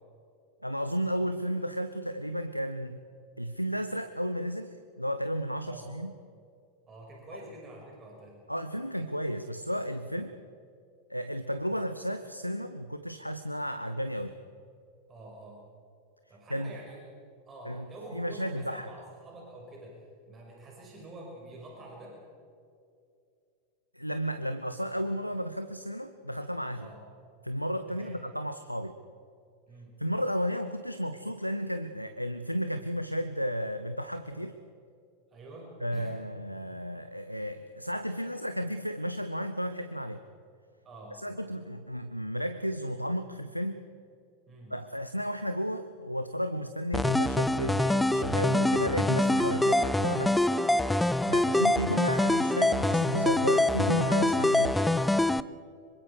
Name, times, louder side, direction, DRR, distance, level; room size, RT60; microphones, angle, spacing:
voice 1, 0.6-3.0 3.4-6.1 7.3-7.4 8.5-10.3 11.1-14.3 16.5-16.7 17.6-17.9 18.1-18.9 23.9-26.9 27.4-28.9 30.0-34.6 35.8-40.2 41.1-43.8 44.7-50.4 51.3-54.9, equal, 90° left, 11 dB, 0.8 m, -33 dB
voice 2, 6.9-8.4 10.2-10.3 15.1-15.6 16.3-17.2 17.5-22.2 26.8-27.1 27.9-28.2 29.7-30.0 35.3-36.2 40.8-41.2 44.5-44.8 51.4-51.7, right 2 dB, 25° right, -2 dB, 5.9 m, -47 dB
sound 1, 46.9-55.4, left 1 dB, 5° left, 0.6 m, -25 dB
26.0 x 24.0 x 4.9 m, 2.5 s
figure-of-eight pair, 90°, 0 cm